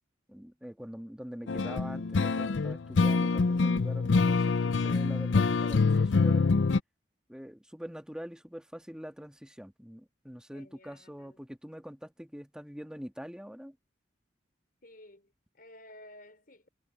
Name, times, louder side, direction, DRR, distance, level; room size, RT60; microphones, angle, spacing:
voice 1, 0.3-6.5 7.3-13.8, equal, 5° right, 1.9 m, -44 dB
sound 1, 1.5-6.8, left 4 dB, 90° left, 0.6 m, -25 dB
voice 2, 10.5-11.4 14.8-16.7, left 1 dB, 50° left, 5.4 m, -54 dB
head